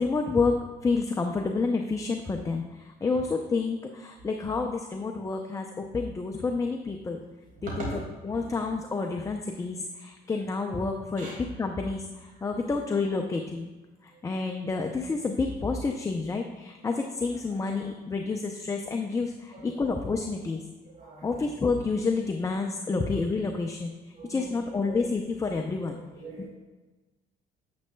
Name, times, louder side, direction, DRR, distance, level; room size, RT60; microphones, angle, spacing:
voice 1, 0.0-7.2 7.6-7.9 8.2-13.7 14.0-20.6 21.2-23.9 24.3-26.0 26.4-26.5, left 4 dB, 20° left, 3 dB, 0.5 m, -29 dB
voice 2, 20.9-21.4 22.9-23.1 24.1-24.5 24.8-25.0 25.8-26.5, right 3 dB, 50° right, -4 dB, 2.1 m, -41 dB
9.3 x 7.7 x 2.2 m, 1.2 s
cardioid pair, 110°, 17 cm